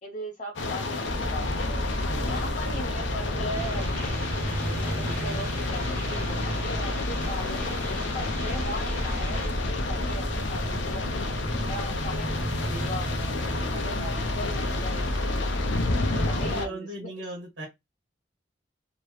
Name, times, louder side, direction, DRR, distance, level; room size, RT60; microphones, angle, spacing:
voice 1, 0.0-1.9 2.2-4.2 4.7-11.3 11.7-15.4 16.2-17.1, equal, 35° left, 0.7 m, -39 dB
sound 1, 0.6-16.7, left 3 dB, 80° left, 0.6 m, -31 dB
sound 2, 1.0-16.6, equal, 25° right, 0.7 m, -32 dB
voice 2, 2.1-2.5 11.6-11.9 15.7-17.7, equal, 85° right, 1.6 m, -38 dB
sound 3, 3.5-9.5, left 1 dB, 10° left, 1.2 m, -40 dB
3.1 x 2.9 x 3.1 m
head